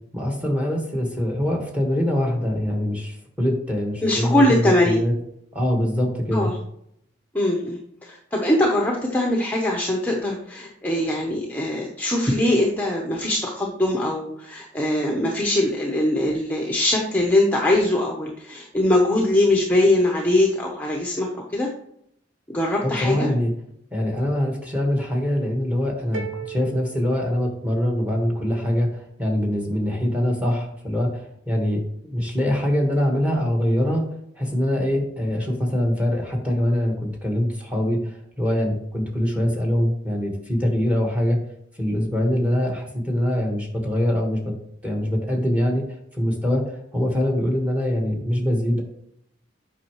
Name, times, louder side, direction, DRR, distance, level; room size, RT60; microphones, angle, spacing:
voice 1, 0.1-5.1 5.5-6.5 22.8-23.5 23.9-34.0 34.4-41.4 41.8-44.5 44.8-45.9 46.1-48.8, equal, 5° right, 1 dB, 1.6 m, -23 dB
voice 2, 4.0-5.0 6.3-6.6 7.3-21.7 22.5-23.3, left 1 dB, 10° left, -1 dB, 0.9 m, -22 dB
sound 1, 26.1-28.1, right 7 dB, 75° right, 0.8 m, -37 dB
8.3 x 5.6 x 3.1 m, 0.71 s
head